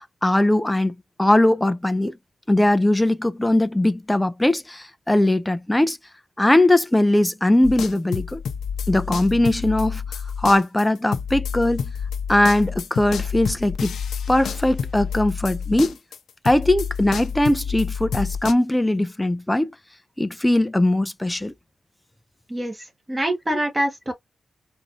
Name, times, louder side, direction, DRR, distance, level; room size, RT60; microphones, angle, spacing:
voice 1, 0.0-2.2 2.5-6.0 6.4-8.4 8.9-10.0 10.4-11.9 12.3-14.0 14.3-16.0 16.4-19.7 20.2-21.5, left 1 dB, 10° left, 0.4 m, -20 dB
sound 1, 7.6-16.2 16.5-18.5, left 6 dB, 85° left, 0.6 m, -29 dB
voice 2, 22.5-24.1, right 1 dB, 15° right, 1.0 m, -25 dB
4.1 x 2.6 x 2.5 m
wide cardioid pair, 150°, 0 cm